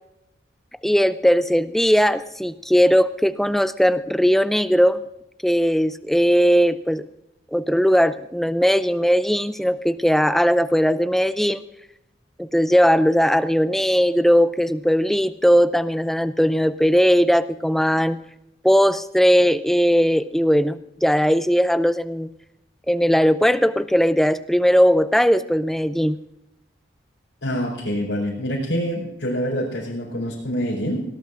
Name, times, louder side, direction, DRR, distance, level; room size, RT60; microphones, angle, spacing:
voice 1, 0.8-5.0 5.4-7.1 7.5-11.6 12.4-18.2 18.6-22.3 22.9-26.2, equal, ahead, 13 dB, 0.4 m, -18 dB
voice 2, 27.4-31.0, equal, 90° left, -6 dB, 4.5 m, -26 dB
20.5 x 18.0 x 2.5 m, 0.87 s
head